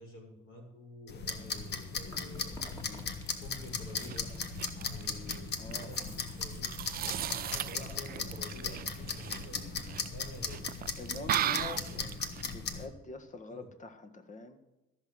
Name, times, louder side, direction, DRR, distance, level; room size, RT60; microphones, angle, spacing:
voice 1, 0.0-3.0 3.4-4.3 4.7-6.8 7.4-9.6 10.1-10.6 11.1-11.3 11.8-12.2 13.5-13.7, left 1 dB, 75° left, 0 dB, 5.7 m, -49 dB
sound 1, 1.1-12.9, left 5 dB, 55° left, 1.5 m, -38 dB
Chewing mastication, 1.3-7.2, equal, 15° left, 2.2 m, -53 dB
sound 2, 3.9-12.5, right 11 dB, 45° right, 0.4 m, -38 dB
voice 2, 5.6-6.2 9.5-9.8 11.0-12.2 12.4-14.6, left 3 dB, 35° left, 8 dB, 1.6 m, -45 dB
14.0 x 6.4 x 7.6 m, 0.99 s
cardioid pair, 90°, 21 cm